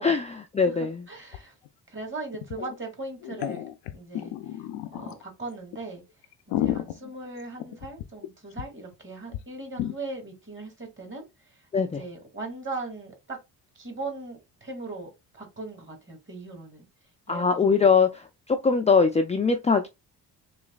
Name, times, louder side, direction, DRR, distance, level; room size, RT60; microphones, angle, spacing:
voice 1, 0.0-1.0 11.7-12.0 17.3-19.9, left 5 dB, 15° left, 0.4 m, -22 dB
voice 2, 0.6-1.5 1.9-3.6 3.9-4.3 4.9-6.0 6.5-11.5 11.8-13.4 13.8-16.8 17.3-17.9, right 3 dB, 30° right, 2.1 m, -39 dB
sound 1, 1.3-1.4 1.7-1.8 2.3-2.7 3.2-5.2 5.7-5.8 6.2-8.3 8.6-8.7 8.9-9.0 9.3-9.4 9.8-9.9, left 12 dB, 80° left, 0.5 m, -32 dB
3.9 x 3.1 x 2.4 m
cardioid pair, 80°, 40 cm